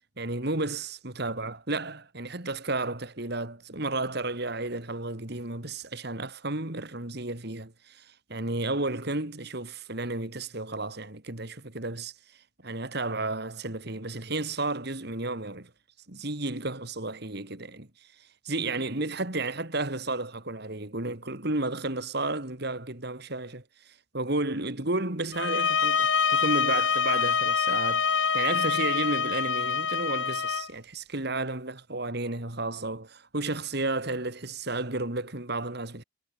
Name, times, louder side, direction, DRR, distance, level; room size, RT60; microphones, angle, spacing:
voice 1, 0.2-8.0 8.3-12.1 12.6-15.7 16.1-17.9 18.4-36.0, right 2 dB, 55° right, 2.6 m, -32 dB
sound 1, 25.3-30.7, left 6 dB, 65° left, 2.3 m, -26 dB
head